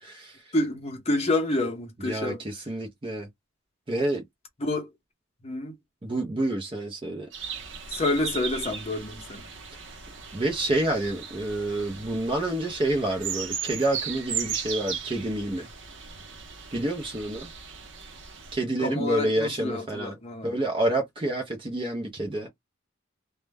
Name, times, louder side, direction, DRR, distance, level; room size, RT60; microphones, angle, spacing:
voice 1, 0.0-0.5 2.0-3.3 3.9-4.2 6.0-7.3 10.3-15.7 16.7-17.5 18.5-20.2 20.4-22.5, right 1 dB, 25° right, 0.5 m, -28 dB
voice 2, 0.5-2.4 4.6-4.9 5.4-5.7 7.9-9.5 18.8-20.6, left 2 dB, 30° left, 0.7 m, -28 dB
sound 1, 7.3-18.5, right 7 dB, 65° right, 0.7 m, -37 dB
2.1 x 2.0 x 3.3 m
head